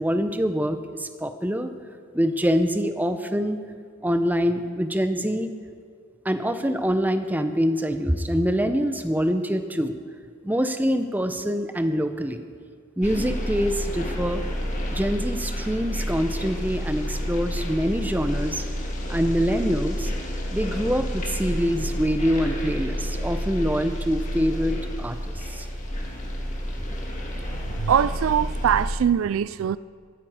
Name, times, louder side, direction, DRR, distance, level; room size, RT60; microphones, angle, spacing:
voice 1, 0.0-1.7 2.1-3.6 4.0-5.5 6.2-10.0 10.4-12.4 13.0-14.4 14.9-18.6 19.1-20.1 20.5-25.7, equal, 10° right, 0.7 m, -25 dB
sound 1, 13.0-28.9, equal, 35° left, 2.1 m, -30 dB
voice 2, 27.4-29.8, right 8 dB, 80° right, 0.3 m, -23 dB
15.0 x 13.5 x 4.9 m
head